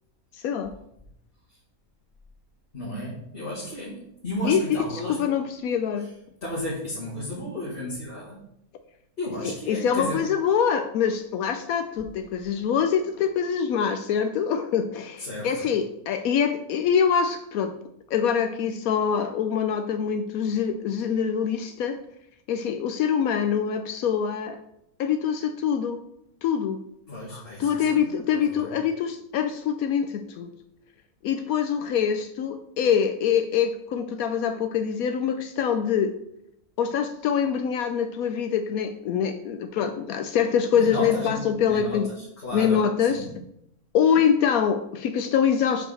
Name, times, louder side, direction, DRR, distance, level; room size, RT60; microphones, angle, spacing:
voice 1, 2.7-5.4 6.0-6.1 6.4-8.4 9.2-10.2 15.2-15.7 27.1-28.7 40.7-43.3, equal, 40° left, -7 dB, 2.2 m, -33 dB
voice 2, 4.4-4.8 5.1-6.1 9.4-17.7 18.1-22.0 22.5-24.6 25.0-26.0 26.4-26.8 27.3-30.5 31.2-36.2 36.8-42.1 42.5-43.3 43.9-45.9, left 7 dB, 80° left, 8 dB, 1.0 m, -24 dB
6.7 x 4.9 x 6.3 m, 0.78 s
omnidirectional pair, 1.5 m